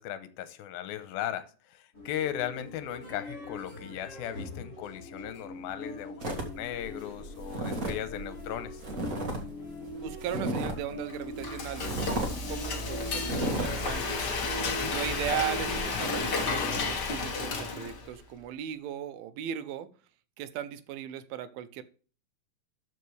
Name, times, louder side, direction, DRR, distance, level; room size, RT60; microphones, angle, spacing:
voice 1, 0.0-8.8 14.7-14.9, left 11 dB, 90° left, 2.7 m, -37 dB
sound 1, 1.9-16.9, left 1 dB, 25° left, 4.3 m, -42 dB
sound 2, 6.2-9.4 9.7-10.9 11.3-11.4 11.8-12.3 12.7-12.9 13.2-13.7, right 1 dB, 35° right, 1.4 m, -34 dB
voice 2, 10.0-14.1 14.9-19.9 20.4-21.8, right 10 dB, 85° right, 2.6 m, -37 dB
Frying (food), 11.1-18.2, left 4 dB, 60° left, 1.0 m, -32 dB
12.5 x 5.3 x 3.3 m
omnidirectional pair, 4.2 m